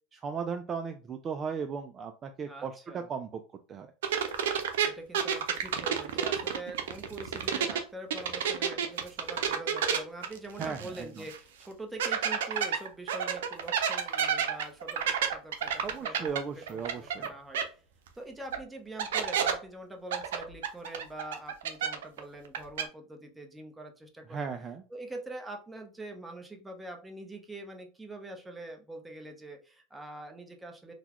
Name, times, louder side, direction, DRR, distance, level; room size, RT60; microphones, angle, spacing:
voice 1, 0.1-3.4 3.7-3.9 10.6-11.2 15.8-17.3 24.3-24.8, right 6 dB, 30° right, 7 dB, 0.3 m, -36 dB
voice 2, 2.5-3.1 4.8-17.8 18.1-24.5 24.9-30.9, right 2 dB, 10° right, 3 dB, 0.8 m, -44 dB
sound 1, 4.0-7.8 8.1-11.0 11.3-11.4 12.0-17.3 17.5-17.6 18.5-18.6 19.0-19.5 20.1-22.2 22.4-22.8, right 8 dB, 90° right, 0.5 m, -30 dB
3.9 x 2.2 x 3.0 m, 0.36 s
supercardioid pair, 120°, 0 cm